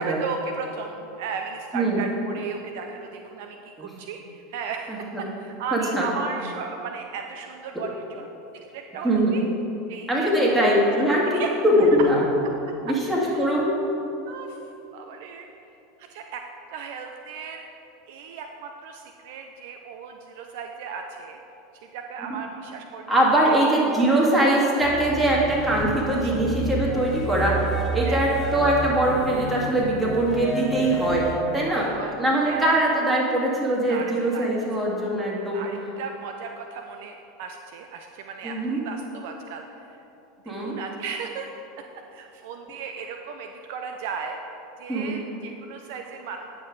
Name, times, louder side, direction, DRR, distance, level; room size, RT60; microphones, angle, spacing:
voice 1, 0.0-8.3 8.7-9.4 9.9-10.5 10.9-11.0 11.3-11.9 13.3-13.5 14.3-14.6 14.9-15.5 16.0-16.4 16.7-17.6 18.1-21.4 21.9-23.6 24.2-24.3 26.2-26.3 28.0-28.2 31.7-32.2 32.4-32.7 33.8-34.7 35.5-40.0 40.4-41.5 42.1-44.4 44.8-46.5, right 5 dB, 55° right, 4 dB, 0.4 m, -36 dB
voice 2, 4.9-5.2 5.7-6.1 9.0-9.4 10.1-11.2 11.6-12.2 12.8-13.7 23.1-27.5 27.9-31.2 31.5-31.9 32.2-35.6 38.4-38.8 40.5-40.8 44.9-45.1, right 1 dB, 10° right, -4 dB, 2.0 m, -22 dB
sound 1, 24.8-31.4, right 1 dB, 25° left, 1.8 m, -30 dB
9.3 x 6.9 x 3.8 m, 3.0 s
figure-of-eight pair, 80°, 0 cm